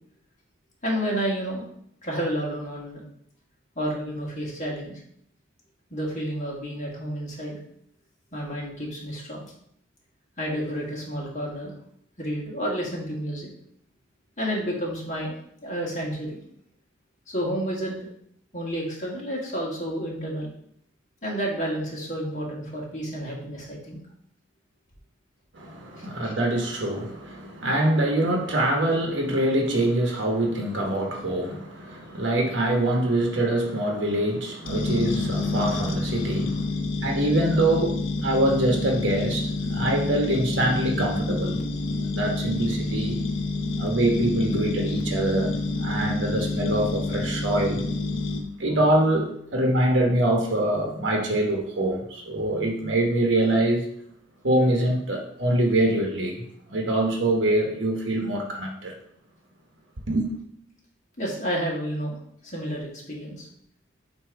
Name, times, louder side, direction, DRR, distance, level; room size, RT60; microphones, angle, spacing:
voice 1, 0.8-1.6 2.0-3.0 3.8-4.9 5.9-7.6 8.3-9.5 10.4-11.7 12.2-13.5 14.4-15.4 15.6-16.4 17.3-18.0 18.5-20.5 21.2-24.0 25.9-26.1 61.2-62.2 62.4-63.5, equal, 40° left, -3 dB, 1.8 m, -30 dB
voice 2, 25.5-41.6 42.0-43.2 43.8-47.8 48.6-53.9 54.4-56.4 56.7-58.9 60.1-60.3, right 1 dB, 65° right, 1 dB, 1.1 m, -24 dB
sound 1, 34.7-48.4, left 3 dB, 75° left, 0.9 m, -28 dB
7.8 x 2.9 x 4.7 m, 0.69 s
head